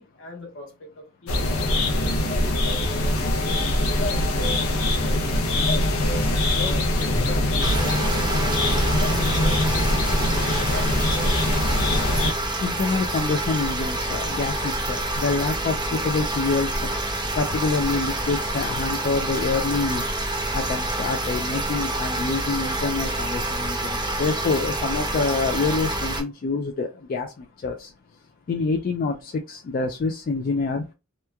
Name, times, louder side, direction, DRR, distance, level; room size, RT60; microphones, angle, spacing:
voice 1, 0.0-2.4 2.9-4.2 4.5-6.0 6.5-10.8, left 3 dB, 60° left, 1.0 m, -42 dB
sound 1, 1.3-12.3, left 1 dB, 80° left, 0.6 m, -22 dB
sound 2, 7.6-26.2, right 1 dB, 20° right, 0.6 m, -27 dB
voice 2, 12.6-16.9 17.3-20.0 20.5-27.9 28.5-30.9, left 4 dB, 40° left, 0.3 m, -26 dB
2.9 x 2.2 x 2.2 m
head